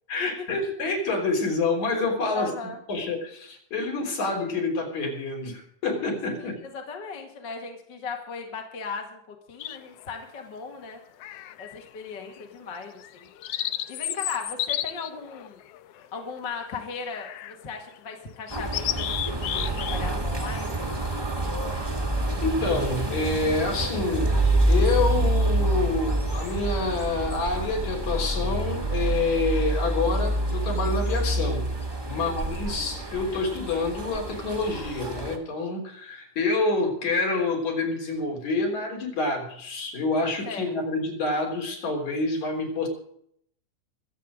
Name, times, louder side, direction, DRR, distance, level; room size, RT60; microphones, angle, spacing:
voice 1, 0.1-2.5 2.9-6.5 21.4-21.5 22.4-24.4 24.7-31.7 32.0-42.9, left 3 dB, 60° left, 1 dB, 5.0 m, -27 dB
voice 2, 2.4-2.8 6.4-11.0 11.6-13.3 13.9-15.6 16.0-20.8 32.1-32.4 40.5-40.7, left 5 dB, 40° left, 2 dB, 2.2 m, -37 dB
sound 1, 9.6-10.1 11.2-11.9 12.3-12.4 13.0-16.4 17.1-17.6 18.0-18.1 18.5-20.0 20.3-20.6, left 12 dB, 85° left, 1.4 m, -32 dB
sound 2, 18.5-35.4, right 1 dB, 10° right, 1.2 m, -27 dB
24.5 x 8.3 x 5.1 m, 0.68 s
omnidirectional pair, 3.7 m